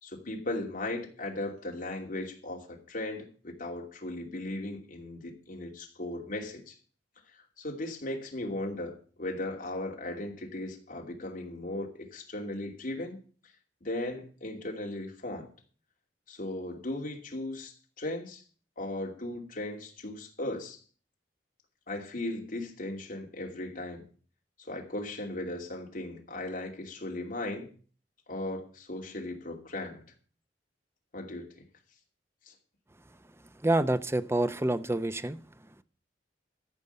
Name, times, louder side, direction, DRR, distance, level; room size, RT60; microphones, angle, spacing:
voice 1, 0.0-6.8 7.6-13.2 13.8-15.5 16.3-18.4 18.8-20.8 21.9-24.1 24.7-27.7 28.3-30.0 31.1-31.5 32.5-32.6, left 1 dB, 50° left, 2.6 m, -37 dB
voice 2, 33.6-35.4, right 2 dB, 15° right, 0.6 m, -27 dB
14.0 x 5.3 x 8.0 m
head